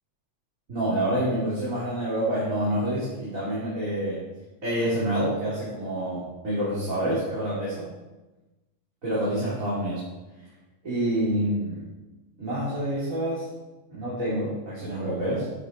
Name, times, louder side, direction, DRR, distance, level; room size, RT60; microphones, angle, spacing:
voice 1, 0.7-4.2 4.6-7.9 9.0-10.0 10.8-11.8 12.4-13.5 13.9-15.5, right 1 dB, 55° right, -10 dB, 3.3 m, -27 dB
9.8 x 7.3 x 4.4 m, 1.1 s
omnidirectional pair, 1.7 m